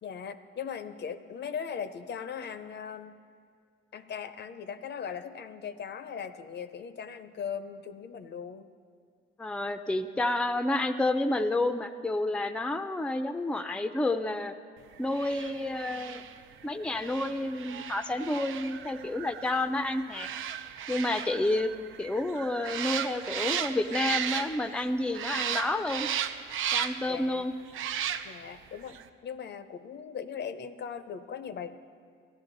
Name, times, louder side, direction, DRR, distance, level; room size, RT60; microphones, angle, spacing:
voice 1, 0.0-3.2 3.9-8.7 27.1-27.5 28.2-31.7, left 7 dB, 55° left, 11 dB, 0.6 m, -39 dB
voice 2, 9.4-14.5 15.0-16.3 16.6-20.3 20.9-21.7 22.0-26.1 26.7-27.5, left 2 dB, 5° left, 8 dB, 0.4 m, -30 dB
sound 1, 15.1-24.9 25.1-27.2 27.7-28.6 28.9-29.0, right 9 dB, 75° right, 0.5 m, -35 dB
15.0 x 11.0 x 4.0 m, 2.1 s
cardioid pair, 90°, 21 cm